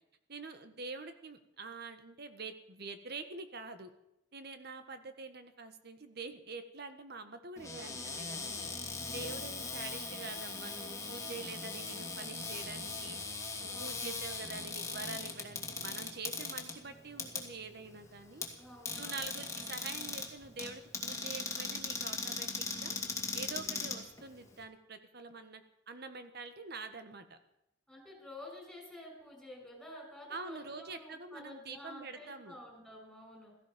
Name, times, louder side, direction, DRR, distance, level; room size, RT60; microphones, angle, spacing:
voice 1, 0.3-3.9 4.3-13.2 13.6-18.4 19.0-23.0 23.3-27.4 30.3-32.6, right 4 dB, 60° right, 9 dB, 1.6 m, -46 dB
Cupboard open or close, 7.6-24.6, left 4 dB, 15° left, 2.3 m, -40 dB
voice 2, 8.7-9.5 13.7-14.1 18.6-19.4 27.9-33.5, left 1 dB, ahead, 0 dB, 5.7 m, -51 dB
16.5 x 15.0 x 5.3 m, 0.83 s
head